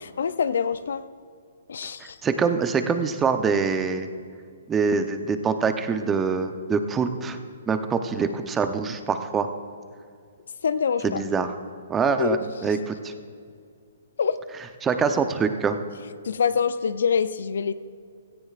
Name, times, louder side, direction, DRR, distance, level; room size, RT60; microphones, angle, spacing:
voice 1, 0.0-1.0 1.7-2.1 10.6-11.2 12.2-12.4 14.2-14.4 16.3-17.7, left 6 dB, 70° left, 14 dB, 0.5 m, -25 dB
voice 2, 2.0-4.1 4.7-7.4 7.7-9.5 11.0-11.5 11.9-13.1 14.8-15.8, right 5 dB, 15° right, 8 dB, 0.8 m, -24 dB
17.0 x 14.0 x 2.5 m, 2.2 s
hypercardioid pair, 130°, 0 cm